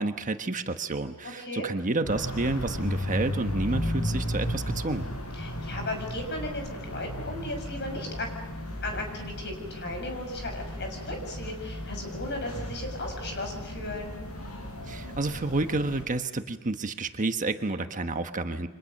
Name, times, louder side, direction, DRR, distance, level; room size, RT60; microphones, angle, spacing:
voice 1, 0.0-5.1 14.9-18.7, right 2 dB, 35° right, 7 dB, 1.2 m, -30 dB
sound 1, 2.0-16.0, equal, 80° left, 7.1 m, -35 dB
voice 2, 5.3-8.3 8.8-14.1, left 1 dB, 50° left, 4 dB, 6.8 m, -36 dB
29.5 x 26.0 x 6.6 m, 1.1 s
head